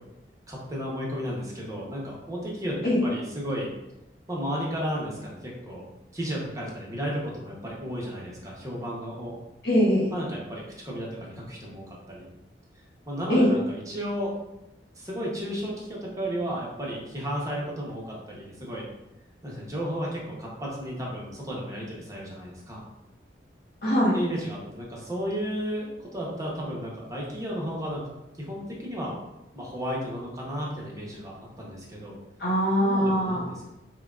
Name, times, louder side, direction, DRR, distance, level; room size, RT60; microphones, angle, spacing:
voice 1, 0.5-3.7 4.3-5.9 6.1-9.4 10.1-12.2 13.1-14.3 14.9-18.9 19.4-22.8 24.1-28.0 28.4-29.1 29.5-32.2 32.8-33.7, equal, 20° right, -4 dB, 0.9 m, -33 dB
voice 2, 9.6-10.1 13.3-13.5 23.8-24.2 32.4-33.5, equal, 60° left, -8 dB, 1.2 m, -22 dB
6.1 x 2.2 x 2.4 m, 0.93 s
head